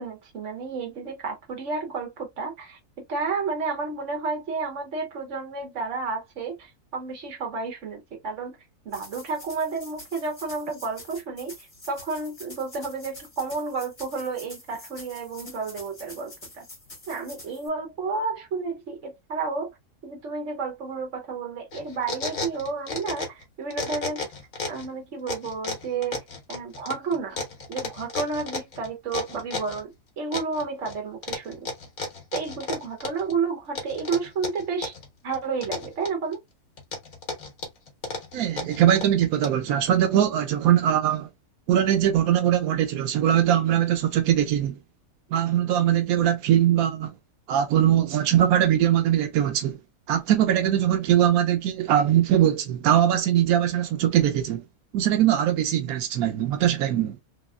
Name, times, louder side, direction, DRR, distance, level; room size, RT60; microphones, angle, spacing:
voice 1, 0.0-2.8 3.1-8.6 8.8-16.6 17.1-19.7 20.0-24.2 24.7-26.2 26.5-27.4 27.7-31.7 32.3-34.9 35.2-36.4, right 4 dB, 60° right, 1.4 m, -31 dB
sound 1, 8.9-17.7, left 1 dB, 30° left, 1.8 m, -46 dB
sound 2, 21.7-23.4 23.7-24.9 25.3-29.8 30.3-31.0 31.2-33.3 33.8-35.1 35.3-36.3 36.8-39.7, left 4 dB, 70° left, 1.6 m, -33 dB
voice 2, 38.3-41.3 41.7-44.8 45.3-47.1 47.5-49.8 50.1-54.6 54.9-57.2, right 11 dB, 90° right, 1.1 m, -21 dB
3.5 x 3.0 x 2.4 m
omnidirectional pair, 1.5 m